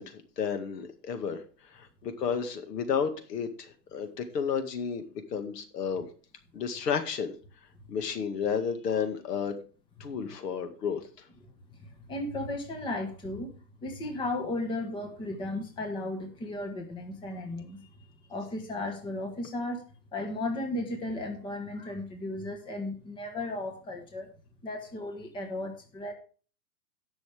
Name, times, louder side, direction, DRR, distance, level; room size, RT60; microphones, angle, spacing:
voice 1, 0.0-1.4 1.7-5.0 5.3-6.1 6.5-7.3 7.9-9.6 10.0-11.0, left 6 dB, 75° left, 8 dB, 2.1 m, -32 dB
voice 2, 11.8-13.5 13.8-17.8 18.3-19.8 20.1-24.3 24.6-26.1, left 2 dB, 10° left, 3 dB, 1.2 m, -35 dB
18.0 x 6.2 x 3.4 m, 0.38 s
hypercardioid pair, 155°, 49 cm